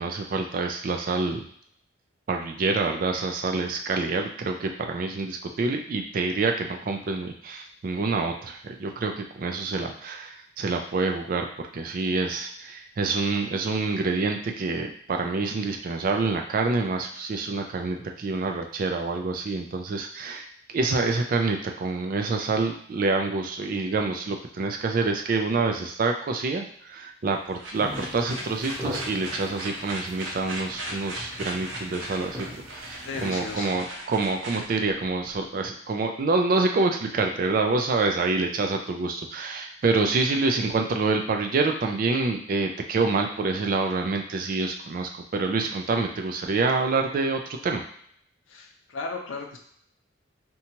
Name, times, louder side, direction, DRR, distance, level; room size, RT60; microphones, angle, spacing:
voice 1, 0.0-1.4 2.3-11.5 11.7-20.5 20.7-47.8, right 3 dB, 45° right, 3 dB, 0.3 m, -27 dB
sound 1, 27.3-35.4, right 1 dB, 75° right, 0.7 m, -37 dB
sound 2, 27.7-33.6, left 1 dB, 15° right, 0.7 m, -40 dB
voice 2, 33.0-33.8 48.5-49.6, left 4 dB, 80° left, 2 dB, 0.5 m, -35 dB
2.8 x 2.2 x 2.8 m, 0.64 s
head